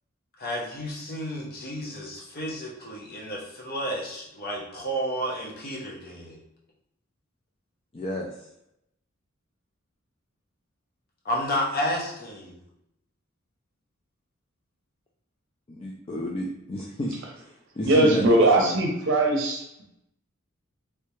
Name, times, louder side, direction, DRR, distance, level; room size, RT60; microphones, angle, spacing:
voice 1, 0.4-6.4 11.2-12.6, equal, 50° left, -2 dB, 0.7 m, -31 dB
voice 2, 7.9-8.3 15.7-18.2 18.6-18.8, left 1 dB, 25° left, -1 dB, 0.4 m, -32 dB
voice 3, 17.8-19.8, right 2 dB, 60° right, 1 dB, 0.7 m, -20 dB
3.3 x 2.8 x 3.0 m, 0.82 s
head